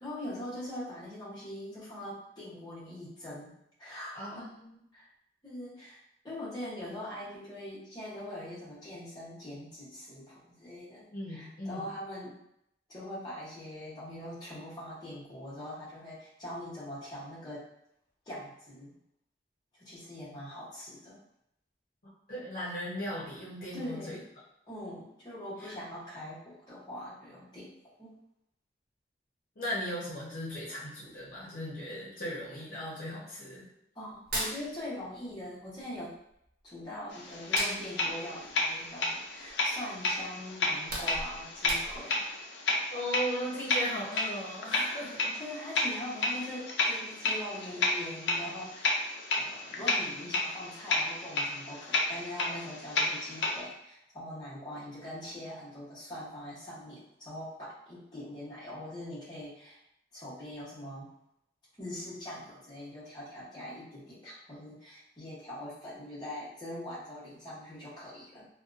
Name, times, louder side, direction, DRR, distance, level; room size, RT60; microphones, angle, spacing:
voice 1, 0.0-3.5 3.8-4.5 4.9-5.1 5.4-6.0 6.2-12.4 12.9-17.6 18.3-19.0 19.8-21.2 23.7-24.3 24.7-27.7 28.0-28.1 33.9-36.1 36.6-42.2 45.0-49.0 49.4-59.8 60.1-61.1 61.8-68.5, left 1 dB, 25° left, -10 dB, 0.9 m, -42 dB
voice 2, 4.1-4.7 11.1-11.9 22.0-24.2 25.6-25.7 29.6-33.7 42.9-45.3, equal, 50° left, -8 dB, 0.8 m, -37 dB
Hands, 34.1-35.4 35.7-37.0 37.3-39.7 40.1-40.3 40.6-42.2, right 1 dB, 50° right, 0.6 m, -38 dB
sound 1, 37.1-53.6, left 2 dB, 85° left, 0.4 m, -32 dB
2.6 x 2.2 x 2.5 m, 0.77 s
head